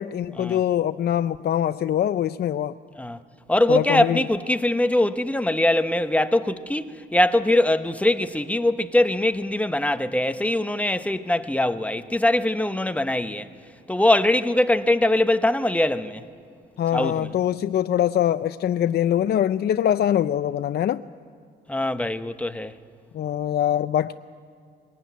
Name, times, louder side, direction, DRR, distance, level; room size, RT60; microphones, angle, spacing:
voice 1, 0.0-2.8 3.7-4.2 16.8-21.0 23.1-24.1, left 10 dB, 55° left, 0.5 m, -23 dB
voice 2, 3.5-13.5 13.9-16.2 16.9-17.3 21.7-22.7, left 1 dB, 5° left, 1.0 m, -22 dB
21.5 x 18.5 x 9.4 m
cardioid pair, 90°, 20 cm